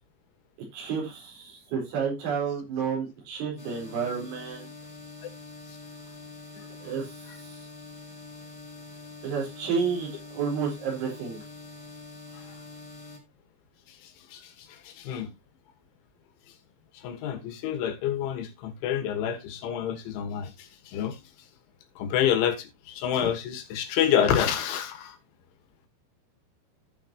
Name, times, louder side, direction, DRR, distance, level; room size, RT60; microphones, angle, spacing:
voice 1, 0.7-4.7 6.8-7.1 7.5-7.6 9.2-11.4, right 6 dB, 85° right, 6.7 m, -30 dB
sound 1, 3.6-13.2, left 3 dB, 25° left, 3.4 m, -45 dB
voice 2, 13.9-15.3 16.9-21.2 22.0-25.2, left 9 dB, 85° left, 4.0 m, -28 dB
15.5 x 6.3 x 2.9 m
omnidirectional pair, 5.3 m